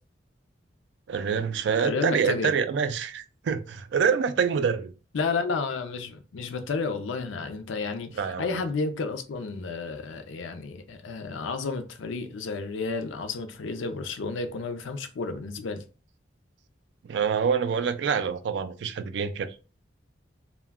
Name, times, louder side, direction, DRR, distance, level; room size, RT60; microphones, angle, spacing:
voice 1, 1.1-4.9 8.2-8.6 17.0-19.7, right 6 dB, 70° right, 0.3 m, -26 dB
voice 2, 1.8-2.5 5.1-15.8, left 4 dB, 90° left, 0.4 m, -31 dB
2.2 x 2.2 x 3.4 m
head